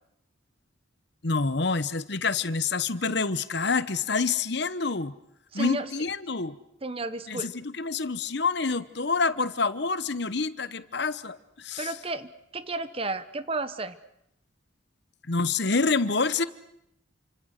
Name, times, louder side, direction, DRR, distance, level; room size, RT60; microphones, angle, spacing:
voice 1, 1.2-5.1 5.5-6.6 7.3-11.9 15.3-16.4, left 4 dB, 60° left, 14 dB, 1.0 m, -27 dB
voice 2, 5.5-5.9 6.8-7.5 11.8-14.0, right 2 dB, 30° right, 13 dB, 0.9 m, -32 dB
28.5 x 26.0 x 6.6 m, 0.78 s
head